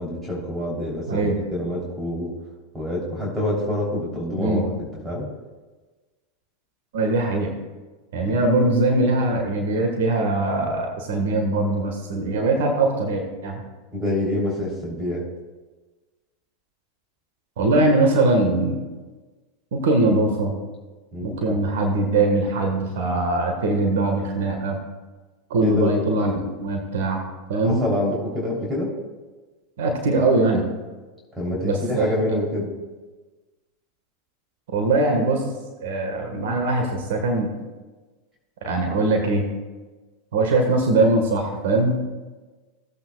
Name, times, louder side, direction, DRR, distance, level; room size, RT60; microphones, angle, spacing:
voice 1, 0.0-2.3 2.7-5.3 8.1-8.4 13.9-15.2 21.1-21.7 25.6-25.9 27.6-28.9 31.4-32.7, left 1 dB, 15° right, -3 dB, 3.3 m, -26 dB
voice 2, 1.1-1.4 4.4-4.6 6.9-7.5 8.1-13.6 17.6-18.8 19.7-20.5 21.2-24.8 25.5-26.3 26.6-27.2 27.5-27.8 29.8-30.6 31.6-32.1 34.7-35.4 35.8-37.5 38.6-39.5 40.3-42.0, right 2 dB, 70° right, 3 dB, 1.5 m, -21 dB
16.5 x 8.2 x 2.3 m, 1.3 s
hypercardioid pair, 95°, 0 cm